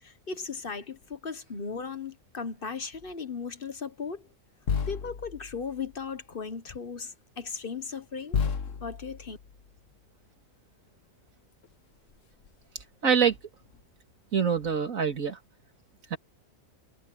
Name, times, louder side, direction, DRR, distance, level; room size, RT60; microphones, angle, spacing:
voice 1, 0.0-4.3 4.9-8.4 8.8-9.4, left 5 dB, 45° left, 1.2 m, -37 dB
sound 1, 1.0-1.1 2.9-3.1 4.7-6.3 7.4-7.5 8.3-10.0 11.6-11.7 12.0-12.6 13.3-13.8 14.6-14.8, left 6 dB, 65° left, 1.4 m, -34 dB
voice 2, 13.0-13.3 14.3-15.4 16.1-16.2, right 7 dB, 75° right, 2.6 m, -24 dB
omnidirectional pair, 1.4 m